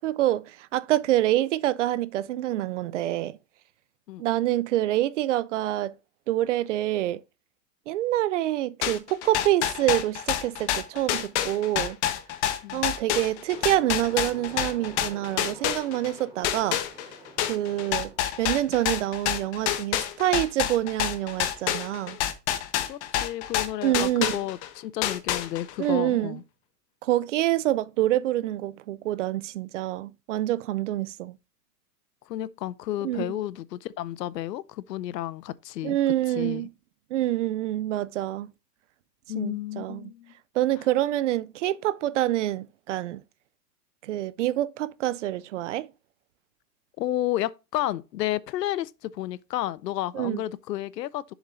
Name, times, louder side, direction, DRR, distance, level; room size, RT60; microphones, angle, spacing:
voice 1, 0.0-3.4 4.2-5.9 6.3-7.2 7.9-12.0 12.7-16.8 17.5-22.2 23.8-24.4 25.8-26.4 27.0-31.4 33.0-33.3 35.8-36.7 37.1-38.5 39.4-40.1 40.6-43.2 44.0-45.9 50.1-50.4, right 14 dB, 50° right, 0.5 m, -26 dB
sound 1, 8.8-16.1 16.4-24.7 25.0-25.8, left 11 dB, 45° left, 1.1 m, -28 dB
sound 2, 13.5-18.7, right 3 dB, 10° right, 3.2 m, -48 dB
voice 2, 22.9-26.4 32.3-36.0 36.3-36.7 39.3-40.3 47.0-51.3, left 13 dB, 75° left, 0.8 m, -31 dB
7.2 x 7.2 x 2.6 m
hypercardioid pair, 145°, 49 cm